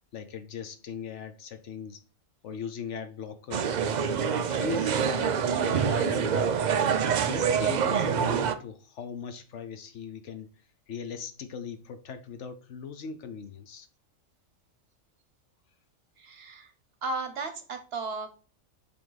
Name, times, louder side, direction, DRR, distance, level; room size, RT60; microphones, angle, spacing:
voice 1, 0.1-2.0 2.4-3.8 4.2-6.6 7.3-10.5 10.9-13.9, left 6 dB, 65° left, 1.0 m, -39 dB
sound 1, 3.5-8.5, right 7 dB, 80° right, 0.4 m, -26 dB
voice 2, 16.2-16.7 17.0-18.3, right 3 dB, 55° right, 0.9 m, -35 dB
7.4 x 3.4 x 3.9 m
omnidirectional pair, 1.4 m